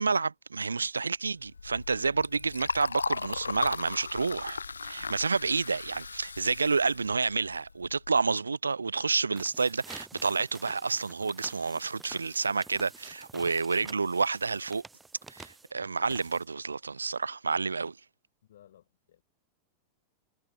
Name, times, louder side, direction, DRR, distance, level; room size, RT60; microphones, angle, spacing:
voice 1, 0.0-14.8 15.3-18.0, right 4 dB, 75° right, 0.5 m, -29 dB
Liquid, 1.4-8.1, left 4 dB, 75° left, 0.4 m, -37 dB
sound 1, 9.2-16.7, right 4 dB, 10° right, 0.9 m, -50 dB
voice 2, 18.4-19.2, left 11 dB, 60° left, 3.2 m, -59 dB
figure-of-eight pair, 90°, 0 cm